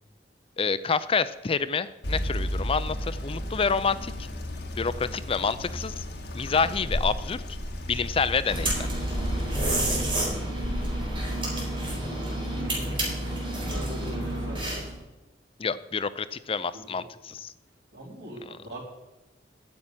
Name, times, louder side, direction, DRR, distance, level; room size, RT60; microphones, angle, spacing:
voice 1, 0.6-4.1 4.8-5.9 6.3-7.4 7.9-8.8 15.6-17.5, left 5 dB, 30° left, 14 dB, 0.5 m, -28 dB
sound 1, 2.0-11.3, equal, 70° left, 1.6 m, -33 dB
sound 2, 8.5-15.0, right 1 dB, 30° right, 4.2 m, -30 dB
voice 2, 12.6-14.8 16.7-16.8 17.9-18.9, right 1 dB, 90° right, -3 dB, 3.9 m, -43 dB
9.8 x 7.4 x 8.8 m, 1.0 s
head